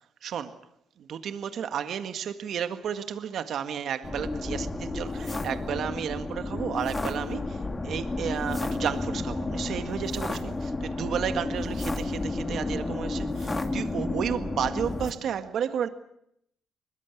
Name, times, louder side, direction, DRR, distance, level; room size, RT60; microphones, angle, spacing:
voice 1, 0.2-0.6 1.0-15.9, right 8 dB, 65° right, 1.8 m, -32 dB
sound 1, 4.0-15.1, left 2 dB, 25° left, 2.8 m, -31 dB
22.5 x 21.5 x 8.5 m
cardioid pair, 90°, 0 cm